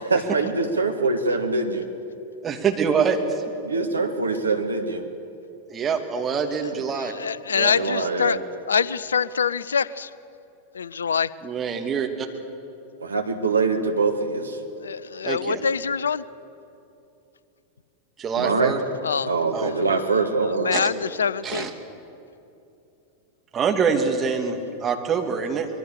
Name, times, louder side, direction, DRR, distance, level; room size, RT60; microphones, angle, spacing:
voice 1, 0.1-1.9 3.6-5.1 7.7-8.4 13.0-14.6 18.4-18.8 19.3-20.7, right 3 dB, 75° right, 5 dB, 1.8 m, -23 dB
voice 2, 2.4-3.4 5.7-7.1 7.5-7.7 11.4-12.3 15.2-15.6 18.2-18.8 19.5-19.7 20.7-20.8 21.4-21.7 23.5-25.7, right 6 dB, 25° right, 3 dB, 2.5 m, -25 dB
voice 3, 6.9-8.4 8.7-10.1 10.7-11.3 14.8-16.2 19.0-19.3 19.7-19.9 20.5-21.7, left 6 dB, 70° left, 20 dB, 0.6 m, -25 dB
24.5 x 22.5 x 7.0 m, 2.7 s
figure-of-eight pair, 90°, 0 cm